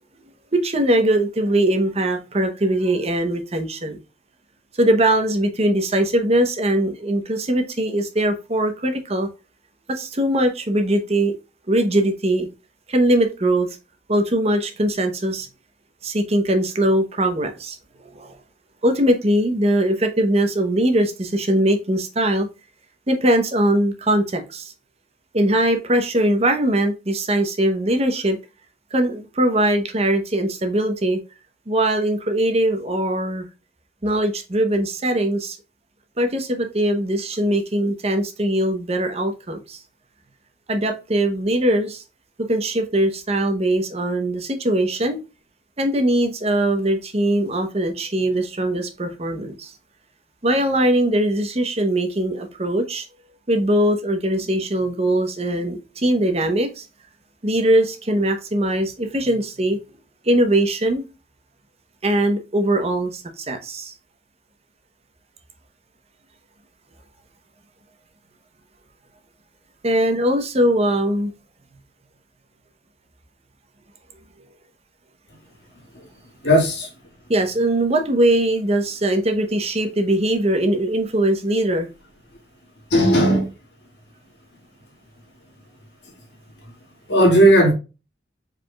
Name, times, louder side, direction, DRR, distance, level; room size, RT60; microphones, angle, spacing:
voice 1, 0.5-4.0 4.8-9.3 9.9-11.3 11.7-12.5 12.9-13.7 14.1-15.5 16.0-17.8 18.1-18.4 18.8-22.5 23.1-24.7 25.3-28.4 28.9-31.2 31.7-33.5 34.0-35.6 36.2-39.8 40.7-42.0 42.4-45.2 45.8-49.7 50.4-53.1 53.5-56.9 57.4-59.8 60.2-61.1 62.0-63.9 69.8-71.3 77.3-81.9, right 1 dB, 35° right, 0.8 m, -21 dB
voice 2, 76.4-76.9 82.9-83.5 87.1-87.7, equal, 65° left, 2.1 m, -15 dB
4.9 x 4.7 x 2.3 m
head